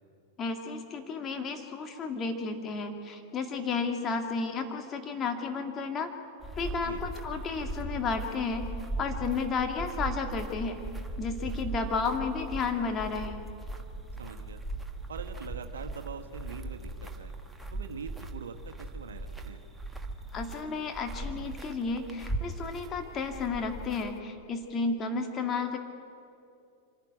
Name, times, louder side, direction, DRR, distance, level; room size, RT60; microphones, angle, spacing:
voice 1, 0.4-6.1 6.6-8.7 9.0-10.8 11.2-13.4 20.3-25.8, left 4 dB, 30° left, 4 dB, 2.2 m, -32 dB
sound 1, 6.4-24.2, right 2 dB, 5° right, 1.5 m, -39 dB
voice 2, 14.2-14.6 15.1-17.3 17.7-19.6, right 6 dB, 75° right, 6 dB, 1.2 m, -43 dB
25.0 x 11.5 x 9.5 m, 2.6 s
hypercardioid pair, 95°, 0 cm